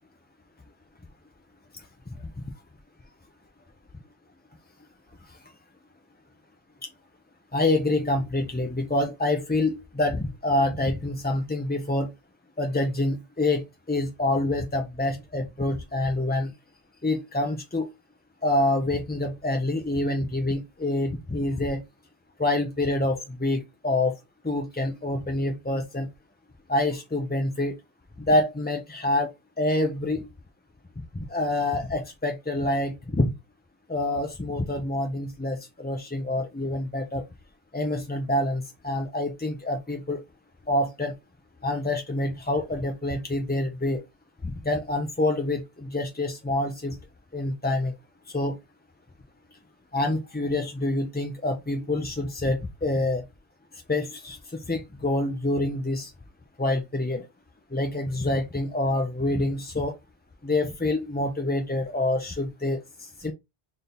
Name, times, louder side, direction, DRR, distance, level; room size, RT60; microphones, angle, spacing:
voice 1, 7.5-12.1 12.6-16.5 17.0-17.9 18.4-21.8 22.4-24.1 24.4-26.1 26.7-27.7 28.2-29.3 29.6-30.3 31.3-33.3 33.9-37.2 37.7-40.2 40.7-41.1 41.6-44.0 44.4-47.0 47.3-47.9 48.3-48.6 49.9-53.2 53.9-56.1 56.6-57.3 57.7-59.9 60.4-63.3, left 2 dB, 15° left, 0.3 m, -26 dB
4.1 x 2.7 x 3.4 m
omnidirectional pair, 1.0 m